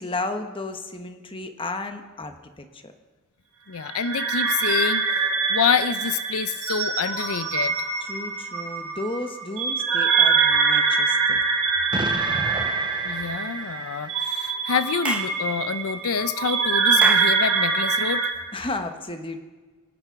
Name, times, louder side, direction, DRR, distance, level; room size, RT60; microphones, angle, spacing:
voice 1, 0.0-2.9 8.0-11.4 18.5-19.4, left 2 dB, 25° left, 7 dB, 1.2 m, -33 dB
voice 2, 3.7-5.2 5.5-7.9 13.0-18.3, left 6 dB, 80° left, 13 dB, 0.6 m, -27 dB
sound 1, 3.8-18.3, right 5 dB, 75° right, 5.8 m, -24 dB
Explosion, 11.9-14.1, right 3 dB, 20° right, 0.4 m, -33 dB
Clapping / Chirp tweet, 15.0-15.4 17.0-17.4, right 1 dB, 5° right, 1.2 m, -28 dB
25.0 x 8.8 x 5.9 m, 1.3 s
head